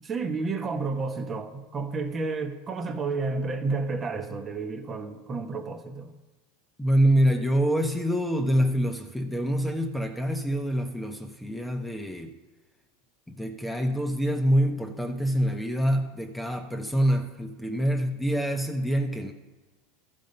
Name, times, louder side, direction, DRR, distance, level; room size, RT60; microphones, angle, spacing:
voice 1, 0.0-6.1, right 4 dB, 30° right, 1.1 m, -31 dB
voice 2, 6.8-12.3 13.3-19.3, equal, 5° left, 0.9 m, -26 dB
13.5 x 5.3 x 5.4 m
hypercardioid pair, 105°, 0 cm